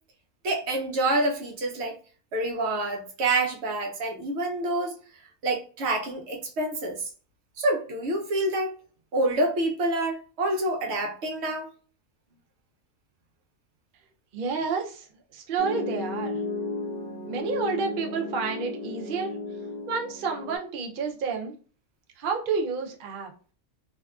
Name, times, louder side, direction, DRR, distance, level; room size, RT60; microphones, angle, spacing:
voice 1, 0.4-2.0 2.3-5.0 5.4-7.0 7.6-8.7 9.1-11.7, right 2 dB, 60° right, 0.8 m, -27 dB
voice 2, 14.3-15.1 15.3-16.4 17.3-19.4 19.9-21.5 22.2-23.3, right 5 dB, 90° right, 0.4 m, -30 dB
Piano, 15.6-20.6, left 3 dB, 75° left, 1.0 m, -34 dB
2.7 x 2.3 x 2.3 m
omnidirectional pair, 1.5 m